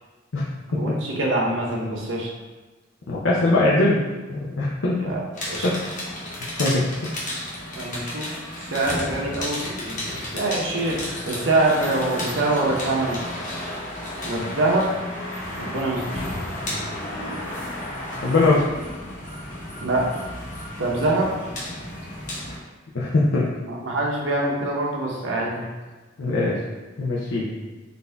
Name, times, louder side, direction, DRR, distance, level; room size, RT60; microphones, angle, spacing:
voice 1, 0.7-2.3 5.0-5.2 5.5-5.7 7.8-8.4 8.7-10.0 10.3-11.0 11.3-13.2 14.2-14.9 15.6-16.0 19.8-20.1 20.8-21.3 23.6-25.7, right 2 dB, 85° right, -3 dB, 1.0 m, -24 dB
voice 2, 3.1-4.0 4.3-5.0 5.6-5.8 6.6-7.1 18.2-18.6 22.9-23.5 26.2-26.6 27.0-27.5, left 2 dB, 80° left, -6 dB, 0.7 m, -21 dB
sound 1, 5.3-22.6, left 1 dB, 40° left, 1.1 m, -32 dB
3.9 x 2.7 x 3.4 m, 1.3 s
head